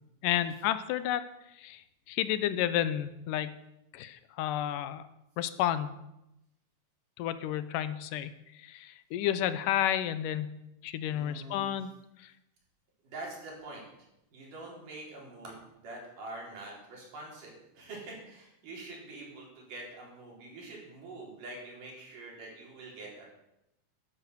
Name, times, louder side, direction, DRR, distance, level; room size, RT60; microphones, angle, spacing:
voice 1, 0.2-1.2 1.6-3.6 3.9-5.1 5.4-5.9 7.2-10.6 10.8-11.9 12.2-12.3, left 11 dB, 85° left, 13 dB, 2.4 m, -31 dB
voice 2, 11.1-11.8 13.0-13.8 14.3-23.3, right 2 dB, 75° right, -2 dB, 5.5 m, -45 dB
12.0 x 11.0 x 6.8 m, 0.87 s
omnidirectional pair, 3.7 m